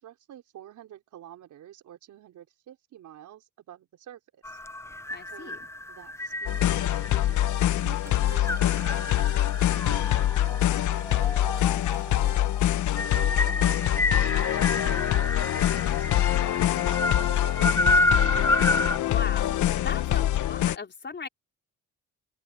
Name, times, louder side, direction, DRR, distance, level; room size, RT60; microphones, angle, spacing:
voice 1, 0.0-4.6 5.3-5.5 5.9-12.4 12.9-17.6, right 11 dB, 75° right, 4.4 m, -49 dB
sound 1, 4.4-19.0, left 2 dB, 10° left, 0.6 m, -30 dB
voice 2, 5.1-5.7 18.8-21.3, left 5 dB, 35° left, 4.5 m, -38 dB
sound 2, 6.5-20.8, left 13 dB, 75° left, 1.0 m, -24 dB
sound 3, 8.0-13.1, right 1 dB, 10° right, 5.9 m, -52 dB
open air
cardioid pair, 90°, 30 cm